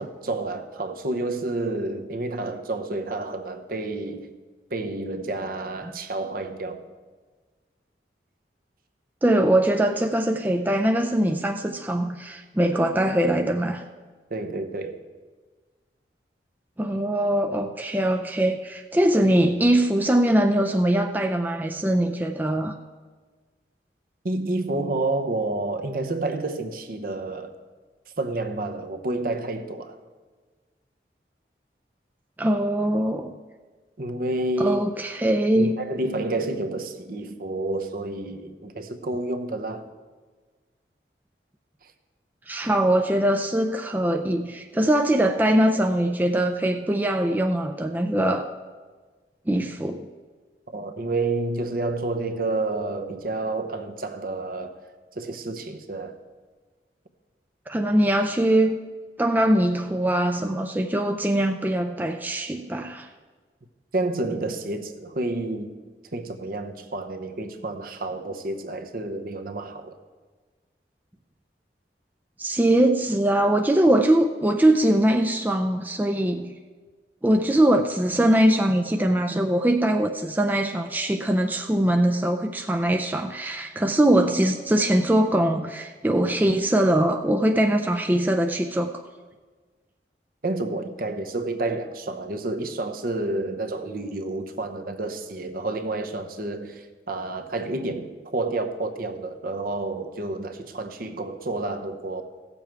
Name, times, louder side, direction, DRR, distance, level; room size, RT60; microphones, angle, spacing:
voice 1, 0.0-4.3 4.7-6.8 14.3-15.0 24.2-27.5 28.2-29.9 34.0-34.8 35.6-39.8 50.7-54.8 55.1-56.2 63.9-65.7 66.1-69.9 90.4-102.2, right 2 dB, 55° right, 7 dB, 0.8 m, -29 dB
voice 2, 9.2-13.8 16.8-22.8 32.4-33.3 34.6-35.8 42.5-48.5 49.5-50.1 57.7-58.8 59.2-63.1 72.4-76.5 77.2-89.0, right 1 dB, 10° right, 4 dB, 0.4 m, -22 dB
16.5 x 7.0 x 4.6 m, 1.4 s
head